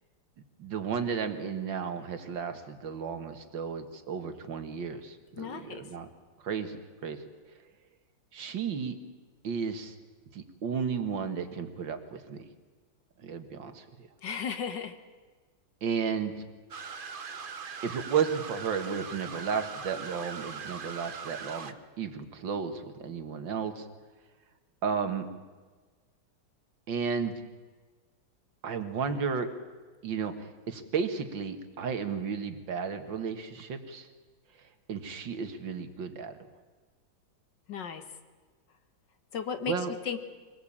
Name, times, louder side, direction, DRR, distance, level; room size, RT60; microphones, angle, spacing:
voice 1, 0.6-6.1 6.4-7.2 8.3-9.0 9.4-10.0 10.3-12.5 13.2-14.1 15.8-16.3 17.8-23.9 24.8-25.3 26.9-27.4 28.6-29.5 30.0-34.1 34.9-36.3 39.7-39.9, right 6 dB, 70° right, 8 dB, 2.3 m, -33 dB
voice 2, 5.4-5.8 14.2-15.0 37.7-38.0 39.3-39.7 40.1-40.2, left 7 dB, 65° left, 8 dB, 2.0 m, -34 dB
sound 1, 16.7-21.7, right 5 dB, 40° right, 0.8 m, -41 dB
24.0 x 20.0 x 8.7 m, 1.4 s
omnidirectional pair, 2.1 m